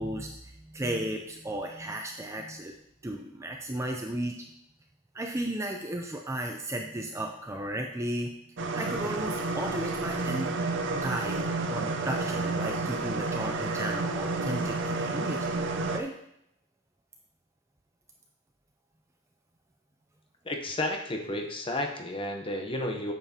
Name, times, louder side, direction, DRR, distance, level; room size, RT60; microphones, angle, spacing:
voice 1, 0.0-2.7 3.0-4.4 5.1-8.3 8.7-10.5 11.0-15.5 15.9-16.1, right 1 dB, 15° right, 2 dB, 0.4 m, -34 dB
sound 1, 8.6-16.0, right 3 dB, 55° right, 0.6 m, -30 dB
voice 2, 20.4-23.1, left 1 dB, 25° left, 3 dB, 0.8 m, -32 dB
8.7 x 7.1 x 2.8 m, 0.77 s
head